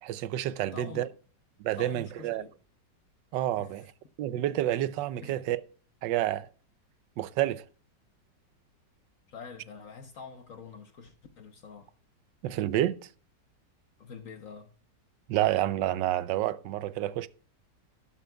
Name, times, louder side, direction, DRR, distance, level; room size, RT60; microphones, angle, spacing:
voice 1, 0.0-1.1 1.6-2.4 3.3-3.9 4.2-5.6 6.0-6.5 7.2-7.6 12.4-13.1 15.3-17.3, right 13 dB, 85° right, 1.3 m, -29 dB
voice 2, 0.7-1.1 1.8-2.5 3.6-3.7 5.2-5.3 9.3-11.9 14.0-14.7, left 5 dB, 55° left, 1.2 m, -45 dB
12.0 x 11.5 x 2.2 m
omnidirectional pair, 1.9 m